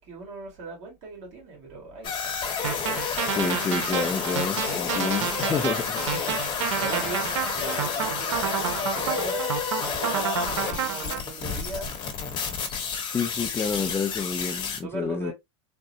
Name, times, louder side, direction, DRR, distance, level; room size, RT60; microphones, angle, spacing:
voice 1, 0.0-2.4 5.7-9.6 9.9-11.9 14.8-15.3, right 4 dB, 50° right, 2.1 m, -38 dB
sound 1, 2.0-14.8, left 6 dB, 30° left, 1.0 m, -30 dB
sound 2, 2.6-11.2, right 9 dB, 90° right, 0.7 m, -30 dB
voice 2, 3.3-6.0 13.1-15.3, left 5 dB, 15° left, 0.4 m, -29 dB
3.7 x 2.1 x 2.7 m
supercardioid pair, 130°, 15 cm